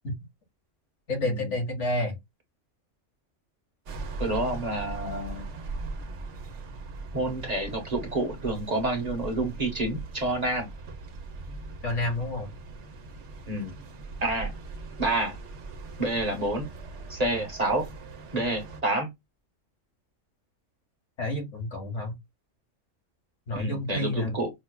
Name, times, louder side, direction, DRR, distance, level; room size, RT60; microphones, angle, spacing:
voice 1, 1.1-2.2 11.8-12.5 21.2-22.1 23.5-24.4, left 1 dB, 75° left, 1.9 m, -29 dB
sound 1, 3.9-18.8, right 3 dB, 75° right, 1.1 m, -40 dB
voice 2, 4.2-5.5 7.1-10.7 13.5-13.7 14.2-14.5 15.0-15.4 16.0-16.7 17.1-17.9 18.3-19.1 23.5-24.5, right 2 dB, 35° right, 1.0 m, -28 dB
5.6 x 2.2 x 2.2 m
omnidirectional pair, 1.3 m